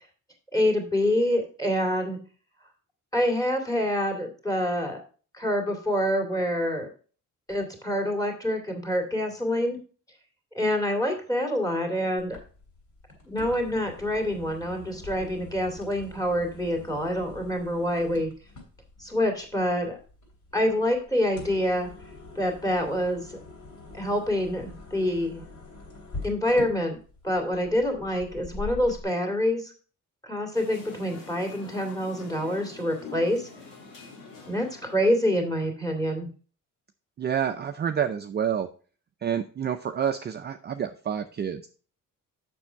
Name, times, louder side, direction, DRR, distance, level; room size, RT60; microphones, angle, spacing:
voice 1, 0.5-2.2 3.1-5.0 5.3-6.9 7.5-9.8 10.5-12.4 13.3-18.3 19.0-20.0 20.5-21.9 22.4-23.4 23.9-25.4 26.2-27.0 27.2-29.7 30.2-33.5 34.5-36.3, equal, 10° left, 2 dB, 2.3 m, -26 dB
sound 1, 12.2-29.0, left 2 dB, 60° left, 3.3 m, -44 dB
sound 2, 30.5-35.4, left 4 dB, 80° left, 2.6 m, -45 dB
voice 2, 37.2-38.7 39.2-41.7, right 8 dB, 30° right, 7 dB, 0.5 m, -28 dB
7.2 x 6.2 x 4.5 m, 0.40 s
cardioid pair, 135°, 33 cm